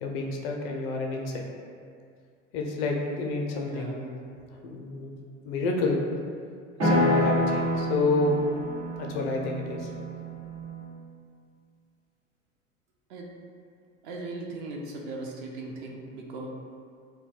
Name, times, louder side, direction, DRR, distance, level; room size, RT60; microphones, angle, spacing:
voice 1, 0.0-1.4 2.5-4.2 4.6-5.1 5.4-6.0 6.8-8.4 9.0-9.9, left 3 dB, 55° left, 1 dB, 0.5 m, -29 dB
voice 2, 3.6-4.1 13.1-13.3 14.0-16.5, right 2 dB, 45° right, -1 dB, 0.4 m, -38 dB
sound 1, 6.8-10.9, equal, 85° right, 0.9 m, -28 dB
2.2 x 2.2 x 3.1 m, 2.2 s
figure-of-eight pair, 80°, 39 cm